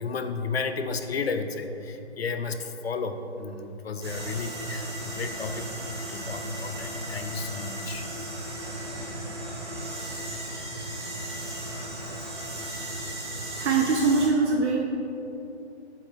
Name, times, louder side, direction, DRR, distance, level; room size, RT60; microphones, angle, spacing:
voice 1, 0.0-5.7 6.1-8.1 10.3-10.7, left 4 dB, 65° left, 8 dB, 0.6 m, -33 dB
sound 1, 4.0-14.3, right 1 dB, 25° right, 0.9 m, -35 dB
voice 2, 13.6-14.8, right 4 dB, 85° right, 1 dB, 0.8 m, -22 dB
7.8 x 3.9 x 4.5 m, 3.0 s
hypercardioid pair, 175°, 34 cm